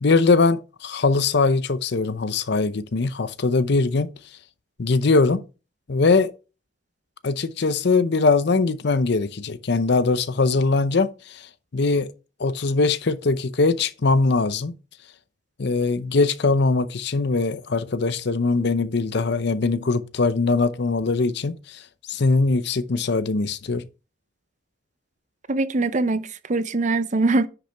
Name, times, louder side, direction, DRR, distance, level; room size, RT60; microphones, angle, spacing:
voice 1, 0.0-4.1 4.8-5.4 5.9-6.3 7.2-11.4 11.7-12.1 12.4-14.7 15.6-21.8 22.1-23.8, left 3 dB, 55° left, 0.6 m, -21 dB
voice 2, 25.5-27.5, right 2 dB, 35° right, 0.6 m, -22 dB
10.0 x 5.6 x 3.4 m
head